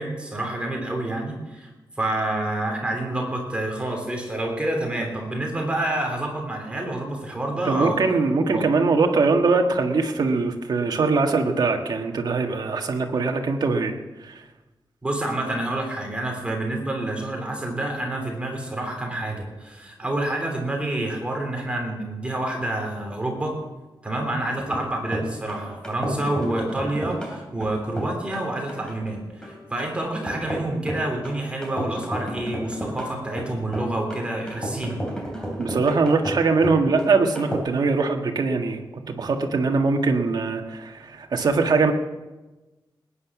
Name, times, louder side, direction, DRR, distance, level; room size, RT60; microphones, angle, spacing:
voice 1, 0.0-1.7 2.0-8.0 8.5-8.7 15.0-23.5 24.0-35.0, right 1 dB, 15° right, 1 dB, 3.2 m, -28 dB
voice 2, 7.7-13.9 14.2-14.3 35.6-41.9, right 4 dB, 55° right, 4 dB, 1.6 m, -22 dB
sound 1, 24.6-37.6, right 1 dB, 10° left, 3.2 m, -32 dB
19.5 x 10.0 x 6.1 m, 1.1 s
wide cardioid pair, 170°, 8 cm